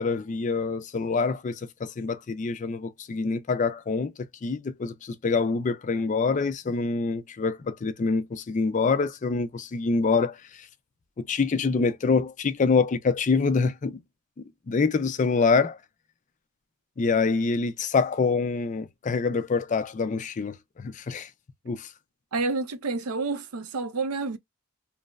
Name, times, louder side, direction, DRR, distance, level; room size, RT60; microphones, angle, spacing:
voice 1, 0.0-4.1 4.4-10.7 11.2-14.0 14.7-15.8 17.0-21.3 21.7-21.9, left 4 dB, 35° left, 0.3 m, -26 dB
voice 2, 22.3-24.4, right 3 dB, 90° right, 0.5 m, -29 dB
3.1 x 2.0 x 2.2 m
head